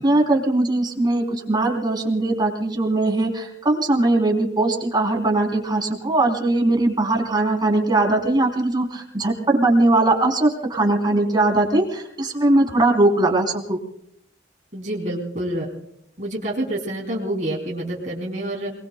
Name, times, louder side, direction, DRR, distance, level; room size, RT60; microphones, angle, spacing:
voice 1, 0.0-13.8, right 2 dB, 25° right, 1 dB, 3.5 m, -20 dB
voice 2, 14.7-15.7 16.2-18.7, right 1 dB, 45° right, -3 dB, 3.3 m, -27 dB
28.5 x 20.5 x 2.3 m, 0.73 s
head